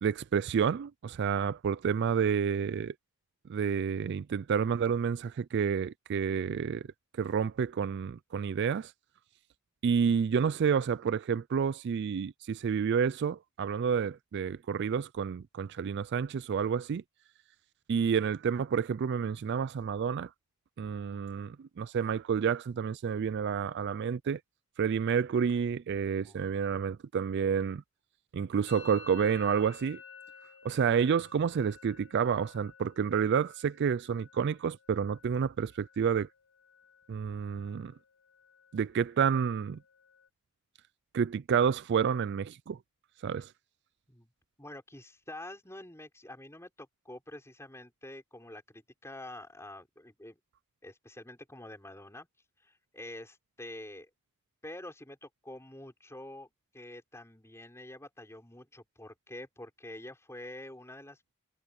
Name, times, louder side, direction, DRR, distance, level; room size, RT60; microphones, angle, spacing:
voice 1, 0.0-2.9 3.5-6.9 7.2-8.9 9.8-17.0 17.9-20.3 20.8-24.4 24.8-27.8 28.3-30.0 30.6-36.3 37.1-37.9 38.7-39.8 41.1-42.8 43.2-43.5, right 6 dB, 50° right, 0.3 m, -29 dB
Musical instrument, 28.7-36.3 36.6-37.1 37.4-38.0 38.3-40.3, left 6 dB, 90° left, 4.0 m, -54 dB
voice 2, 44.6-50.4 50.8-52.3 52.6-54.1 54.6-61.2, left 1 dB, 10° left, 5.9 m, -47 dB
head